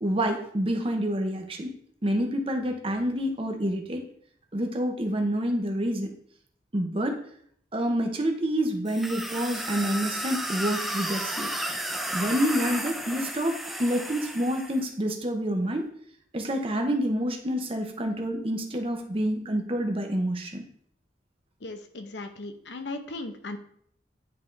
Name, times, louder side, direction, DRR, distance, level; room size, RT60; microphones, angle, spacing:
voice 1, 0.0-1.7 2.0-4.1 4.5-6.1 6.7-7.2 7.7-11.5 12.1-15.9 16.3-20.6, equal, 30° right, 4 dB, 0.8 m, -28 dB
sound 1, 8.9-14.8, right 1 dB, ahead, 0.4 m, -33 dB
voice 2, 21.6-23.6, left 2 dB, 75° left, 6 dB, 0.8 m, -37 dB
9.7 x 3.7 x 3.3 m, 0.64 s
head